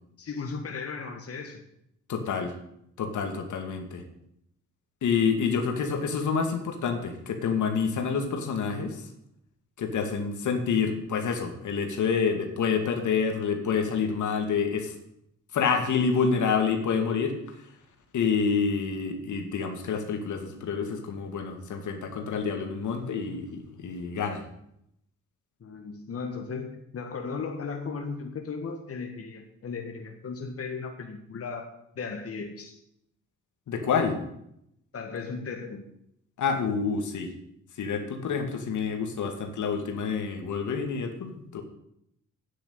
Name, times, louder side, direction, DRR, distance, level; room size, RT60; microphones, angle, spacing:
voice 1, 0.2-1.6 25.6-31.7 32.0-32.8 34.9-35.8, left 5 dB, 45° left, 4 dB, 1.9 m, -36 dB
voice 2, 2.1-2.5 3.0-4.0 5.0-9.0 9.8-14.9 15.5-17.4 18.1-24.4 33.7-34.2 36.4-37.3 37.8-41.6, left 5 dB, 70° left, 5 dB, 2.3 m, -28 dB
9.6 x 8.5 x 9.0 m, 0.77 s
cardioid pair, 70°, 31 cm